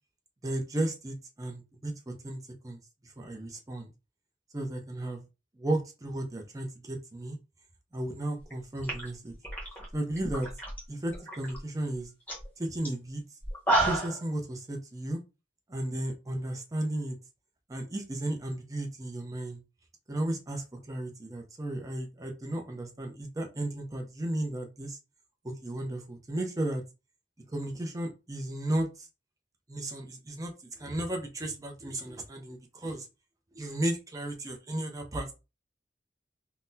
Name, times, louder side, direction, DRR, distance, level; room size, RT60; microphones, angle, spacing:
voice 1, 0.4-2.8 3.2-3.9 4.5-5.2 5.6-7.4 7.9-9.3 9.9-10.5 10.9-12.1 12.6-13.2 13.8-15.2 15.7-17.2 17.7-19.6 20.1-25.0 25.4-26.8 27.5-29.1 29.7-33.1 33.5-35.3, right 1 dB, 20° right, 0.6 m, -34 dB
sound 1, 8.4-8.5 8.8-10.8 11.1-11.6 11.9-12.0 12.3-12.5 12.8-12.9 13.4-14.2, right 2 dB, 10° left, 1.0 m, -30 dB
3.9 x 2.1 x 2.6 m
head